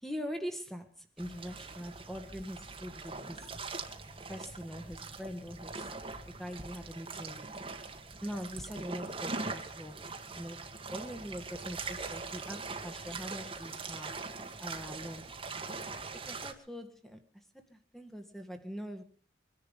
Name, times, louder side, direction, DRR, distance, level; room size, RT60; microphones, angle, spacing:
voice 1, 0.0-3.5 4.3-5.9 6.2-7.5 8.2-10.1 10.3-14.2 14.6-15.4 16.2-17.2 17.7-19.0, equal, ahead, 1.8 m, -43 dB
sound 1, 1.2-16.5, right 3 dB, 30° right, 1.7 m, -42 dB
23.5 x 10.5 x 5.4 m
head